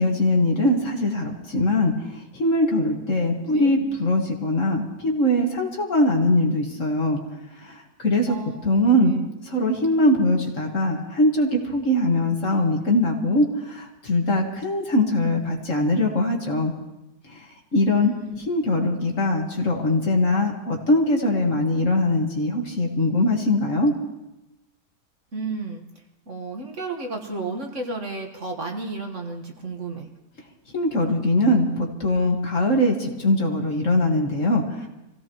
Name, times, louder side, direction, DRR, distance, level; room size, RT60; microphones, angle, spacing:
voice 1, 0.0-7.2 7.6-8.4 8.6-9.2 9.5-16.7 17.3-17.4 17.7-18.1 18.5-23.9 30.7-34.9, left 1 dB, 50° left, 1 dB, 2.1 m, -22 dB
voice 2, 3.5-3.9 8.3-8.6 9.0-9.2 17.9-18.4 25.3-25.8 26.3-30.1, right 3 dB, 45° right, 2 dB, 1.8 m, -32 dB
26.5 x 16.0 x 3.1 m, 0.96 s
omnidirectional pair, 1.8 m